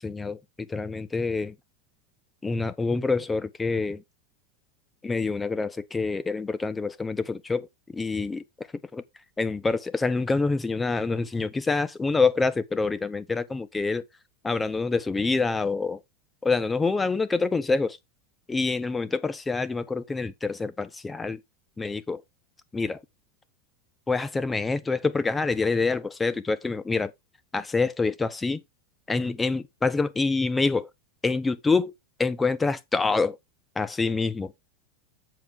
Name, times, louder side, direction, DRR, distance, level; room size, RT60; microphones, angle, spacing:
voice 1, 0.0-1.5 2.4-4.0 5.0-7.7 7.9-8.7 8.9-9.0 9.4-14.1 14.4-16.0 16.4-18.0 18.5-21.4 21.8-22.2 22.7-23.0 24.1-27.1 27.5-28.6 29.1-30.9 31.2-31.9 32.2-33.4 33.8-34.5, left 4 dB, 10° left, 0.9 m, -26 dB
7.9 x 7.1 x 3.6 m
supercardioid pair, 135°, 0 cm